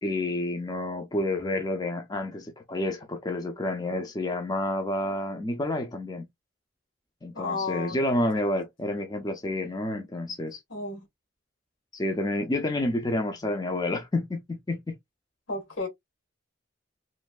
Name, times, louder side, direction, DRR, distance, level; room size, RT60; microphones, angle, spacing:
voice 1, 0.0-6.3 7.2-10.6 11.9-15.0, left 1 dB, 20° left, 0.4 m, -29 dB
voice 2, 7.3-8.0 10.7-11.0 15.5-15.9, left 3 dB, 80° left, 1.3 m, -32 dB
3.0 x 2.5 x 2.2 m
head